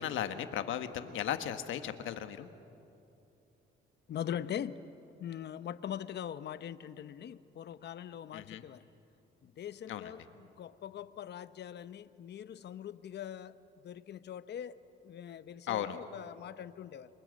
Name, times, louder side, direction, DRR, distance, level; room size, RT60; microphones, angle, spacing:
voice 1, 0.0-2.5 8.3-8.6 9.9-10.1 15.7-16.0, left 10 dB, 80° left, 1.4 m, -36 dB
voice 2, 4.1-4.9 5.2-8.8 9.4-13.6 13.8-14.8 15.0-17.1, left 9 dB, 60° left, 0.9 m, -42 dB
29.0 x 24.0 x 7.7 m
cardioid pair, 90°, 20 cm